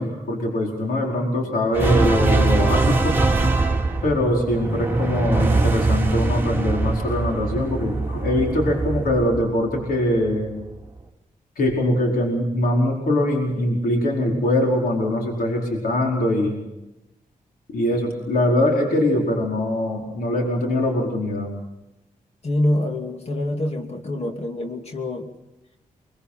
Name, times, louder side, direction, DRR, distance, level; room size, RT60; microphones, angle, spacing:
voice 1, 0.0-3.2 4.0-10.5 11.6-16.6 17.7-21.5, left 1 dB, 85° left, 0 dB, 4.9 m, -22 dB
sound 1, 1.7-10.3, right 3 dB, 15° right, 3.1 m, -22 dB
voice 2, 22.4-25.3, left 1 dB, 45° left, 3 dB, 2.7 m, -25 dB
24.0 x 23.0 x 5.8 m, 0.96 s
wide cardioid pair, 105°, 15 cm